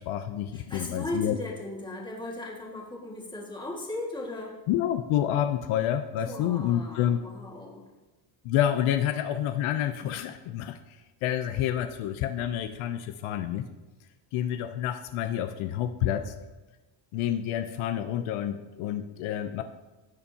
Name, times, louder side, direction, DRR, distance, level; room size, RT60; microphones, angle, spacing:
voice 1, 0.0-1.4 4.7-7.2 8.4-10.8 11.2-13.6 14.3-16.3 17.1-19.6, left 11 dB, 75° left, 8 dB, 0.7 m, -28 dB
voice 2, 0.5-4.6 6.3-7.8, left 1 dB, 10° left, -4 dB, 1.8 m, -37 dB
15.5 x 7.0 x 2.8 m, 1.1 s
cardioid pair, 165°, 50 cm